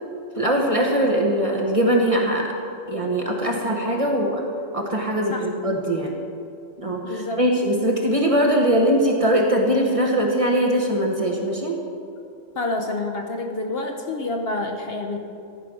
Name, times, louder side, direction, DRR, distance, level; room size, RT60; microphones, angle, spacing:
voice 1, 0.4-2.5 2.9-4.4 4.7-6.1 6.8-11.8, right 1 dB, 30° right, 0 dB, 0.9 m, -21 dB
voice 2, 7.0-7.4 12.6-15.2, left 2 dB, 55° left, 3 dB, 0.9 m, -28 dB
14.0 x 4.9 x 6.1 m, 2.5 s
omnidirectional pair, 1.4 m